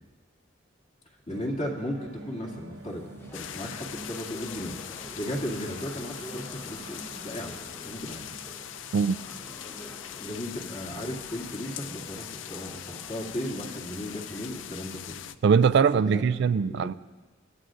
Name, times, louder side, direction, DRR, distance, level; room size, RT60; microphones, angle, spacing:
voice 1, 1.3-3.0 3.3-7.6 7.8-8.3 10.2-15.2 15.9-16.2 16.6-16.9, equal, 40° left, -1 dB, 2.3 m, -36 dB
sound 1, 1.3-10.0, right 3 dB, 90° right, 0.8 m, -48 dB
sound 2, 1.9-14.6, equal, 15° left, 0.8 m, -48 dB
sound 3, 3.3-15.3, left 10 dB, 75° left, 0.4 m, -41 dB
voice 2, 15.4-16.9, right 6 dB, 65° right, 16 dB, 0.3 m, -21 dB
23.5 x 14.0 x 2.5 m, 1.3 s
head